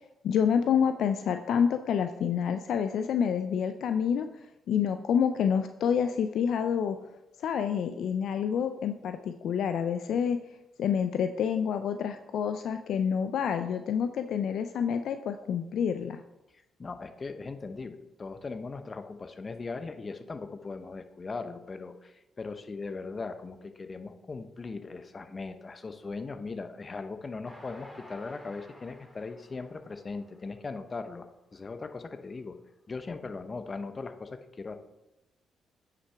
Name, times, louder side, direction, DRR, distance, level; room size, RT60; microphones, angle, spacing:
voice 1, 0.2-4.3 4.7-7.0 7.4-10.4 10.8-16.2, left 7 dB, 70° left, 8 dB, 0.4 m, -28 dB
voice 2, 16.5-31.3 31.5-32.6 32.9-34.8, left 4 dB, 40° left, 9 dB, 0.8 m, -39 dB
Train, 27.4-30.9 31.4-31.5 31.8-31.9, equal, 10° left, 2.1 m, -53 dB
9.2 x 5.8 x 3.4 m, 0.92 s
hypercardioid pair, 50°, 0 cm